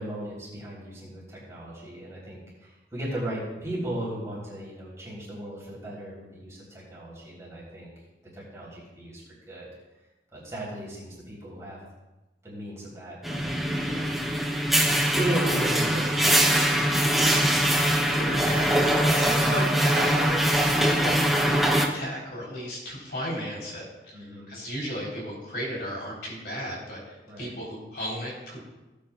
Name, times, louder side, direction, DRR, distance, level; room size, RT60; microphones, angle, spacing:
voice 1, 0.0-7.9 8.3-9.2 9.5-9.7 10.3-11.8 12.4-14.1 14.7-16.5 24.1-24.5 27.3-27.5, right 1 dB, 15° right, -7 dB, 3.5 m, -36 dB
sound 1, 13.2-21.9, equal, ahead, 0.7 m, -23 dB
voice 2, 17.7-28.6, equal, 60° left, -4 dB, 3.7 m, -35 dB
17.0 x 8.5 x 2.4 m, 1.1 s
head